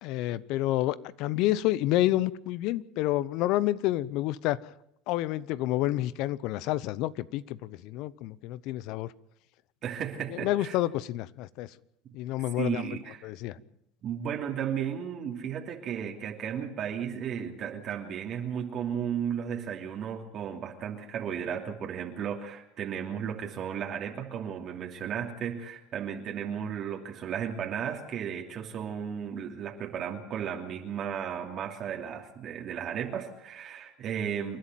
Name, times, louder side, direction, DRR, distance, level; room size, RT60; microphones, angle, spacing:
voice 1, 0.0-4.6 5.1-9.1 10.3-11.7 12.1-12.8 13.2-13.6, left 15 dB, 65° left, 0.8 m, -29 dB
voice 2, 9.8-10.8 12.6-13.3 14.0-34.6, right 8 dB, 50° right, 3.0 m, -34 dB
28.0 x 11.5 x 9.2 m
hypercardioid pair, 90°, 0 cm